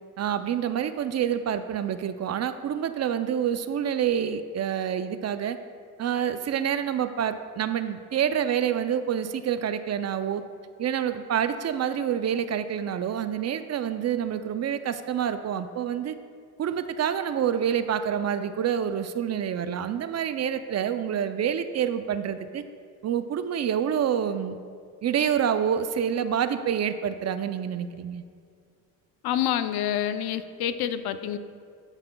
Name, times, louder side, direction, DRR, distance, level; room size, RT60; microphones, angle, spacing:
voice 1, 0.2-5.6 6.0-10.4 10.8-16.2 16.6-22.6 23.0-24.6 25.0-28.2, right 9 dB, 40° right, 11 dB, 0.4 m, -27 dB
voice 2, 29.2-31.4, left 10 dB, 70° left, 12 dB, 0.6 m, -27 dB
13.5 x 5.6 x 2.2 m, 2.2 s
supercardioid pair, 70°, 41 cm